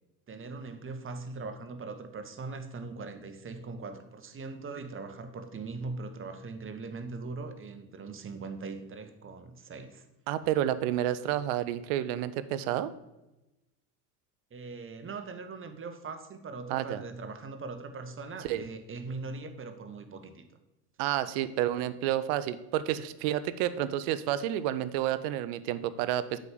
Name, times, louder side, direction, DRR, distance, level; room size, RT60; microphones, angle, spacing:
voice 1, 0.3-10.0 14.5-20.4, right 3 dB, 25° right, 8 dB, 1.3 m, -40 dB
voice 2, 10.3-12.9 16.7-17.0 18.4-18.6 21.0-26.4, right 12 dB, 55° right, 14 dB, 0.8 m, -30 dB
8.3 x 5.2 x 6.7 m, 0.97 s
hypercardioid pair, 70°, 48 cm